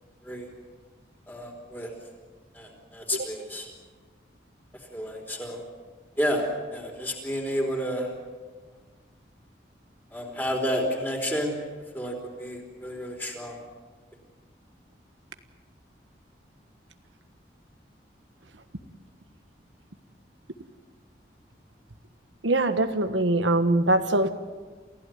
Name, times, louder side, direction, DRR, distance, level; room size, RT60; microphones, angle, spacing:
voice 1, 1.3-1.9 2.5-3.7 4.9-5.6 6.2-6.5 6.7-8.1 10.1-11.6 11.9-13.6, equal, 10° left, 1 dB, 4.4 m, -30 dB
voice 2, 22.4-24.3, right 2 dB, 90° right, 8 dB, 1.5 m, -22 dB
28.0 x 16.0 x 9.6 m, 1.4 s
head